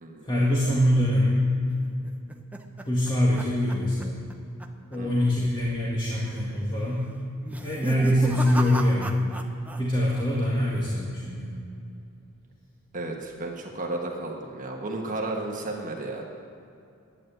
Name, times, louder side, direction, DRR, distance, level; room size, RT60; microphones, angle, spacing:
voice 1, 0.2-1.5 2.9-4.2 4.9-7.1 7.6-9.2 9.8-11.5, equal, 20° left, -6 dB, 1.8 m, -24 dB
sound 1, 1.8-4.3 4.6-5.0 5.3-5.4 6.1-6.5 7.4-9.8 10.1-10.7, equal, 5° right, 0.7 m, -36 dB
voice 2, 12.9-16.2, right 2 dB, 40° right, 0 dB, 1.4 m, -33 dB
11.5 x 9.5 x 7.9 m, 2.6 s
head